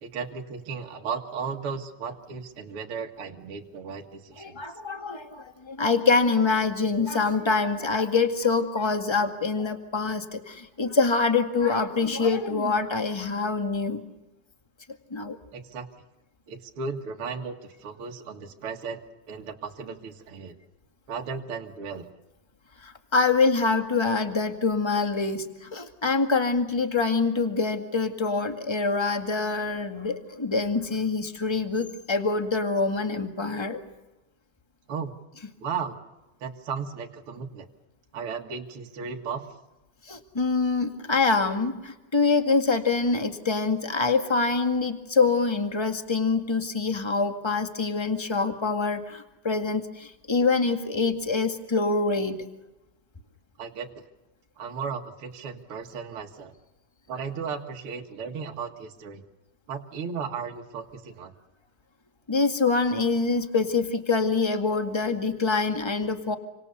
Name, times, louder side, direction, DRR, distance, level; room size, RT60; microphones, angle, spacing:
voice 1, 0.0-4.6 15.5-15.9 16.5-17.5 17.8-19.0 19.3-20.5 21.1-22.1 34.9-35.1 35.6-36.0 36.4-37.7 38.1-39.5 53.6-53.9 54.6-56.5 57.1-59.2 59.7-61.3, right 5 dB, 50° right, 2 dB, 2.4 m, -35 dB
voice 2, 4.4-14.0 15.1-15.3 22.8-33.8 40.1-52.4 62.3-66.3, left 4 dB, 10° left, 6 dB, 1.3 m, -25 dB
29.0 x 25.5 x 6.9 m, 0.99 s
omnidirectional pair, 3.5 m